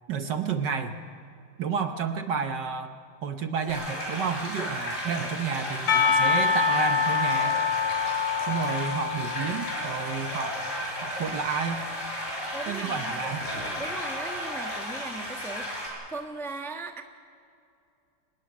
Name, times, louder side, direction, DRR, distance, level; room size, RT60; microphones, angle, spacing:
voice 1, 0.1-1.0 1.6-2.9 3.2-7.6 8.4-10.6 11.0-11.8 12.7-13.5, right 6 dB, 60° right, 7 dB, 1.4 m, -31 dB
sound 1, 3.7-15.9, equal, 30° left, 6.6 m, -34 dB
Percussion / Church bell, 5.9-10.9, left 6 dB, 80° left, 3.0 m, -26 dB
voice 2, 12.5-13.2 13.8-17.0, right 3 dB, ahead, 4 dB, 0.9 m, -38 dB
25.0 x 14.5 x 10.0 m, 2.5 s
omnidirectional pair, 2.4 m